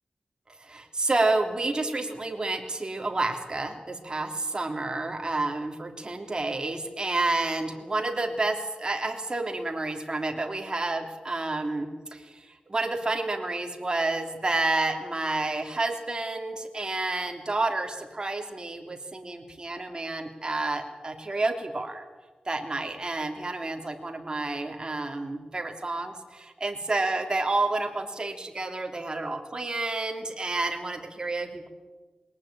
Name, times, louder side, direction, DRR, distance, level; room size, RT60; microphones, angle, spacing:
voice 1, 0.6-22.0 22.4-31.7, right 2 dB, 30° right, 3 dB, 3.2 m, -30 dB
21.0 x 18.5 x 8.8 m, 1.3 s
wide cardioid pair, 80°, 3 cm